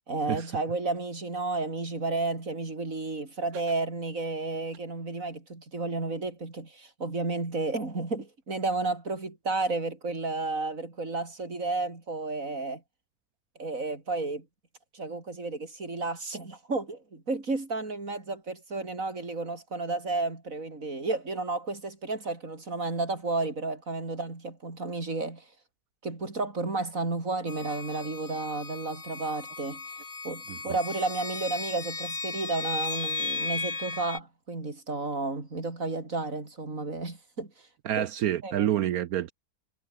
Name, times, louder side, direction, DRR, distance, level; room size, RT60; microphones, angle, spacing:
voice 1, 0.1-12.8 13.6-14.5 14.9-25.5 26.0-29.8 30.2-37.7 38.0-38.1 38.4-38.7, right 3 dB, 55° right, 4.8 m, -32 dB
sound 1, 27.5-34.2, left 4 dB, 45° left, 2.6 m, -36 dB
voice 2, 37.8-39.3, right 11 dB, 70° right, 1.2 m, -27 dB
omnidirectional pair, 1.7 m